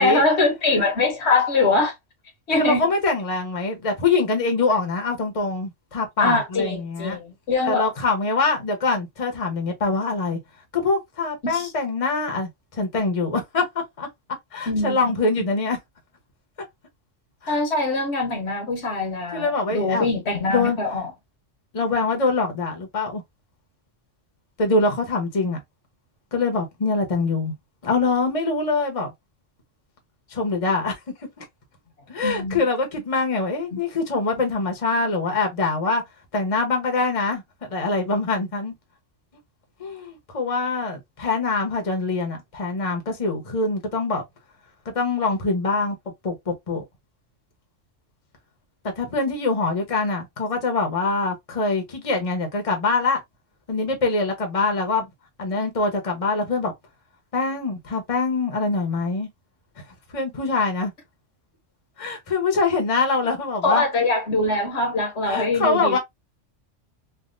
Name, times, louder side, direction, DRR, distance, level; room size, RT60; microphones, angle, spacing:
voice 1, 0.0-1.9 2.5-2.8 6.2-7.9 11.4-11.7 14.7-15.5 17.5-21.1 32.2-32.6 33.7-33.8 63.6-66.0, left 3 dB, 65° left, 1.3 m, -23 dB
voice 2, 2.5-7.2 7.6-10.4 10.7-14.1 14.5-15.8 17.4-17.5 19.3-20.1 20.5-20.8 21.7-23.2 24.6-25.6 26.3-27.5 27.8-29.1 30.3-31.0 31.4-31.5 32.1-36.0 36.3-37.4 37.7-38.7 39.8-44.2 44.9-46.0 46.2-46.8 49.0-53.2 53.7-55.1 55.4-56.7 57.3-59.3 60.1-60.9 62.0-63.8 65.2-66.0, left 3 dB, 30° left, 0.9 m, -24 dB
3.4 x 2.5 x 2.5 m
omnidirectional pair, 1.3 m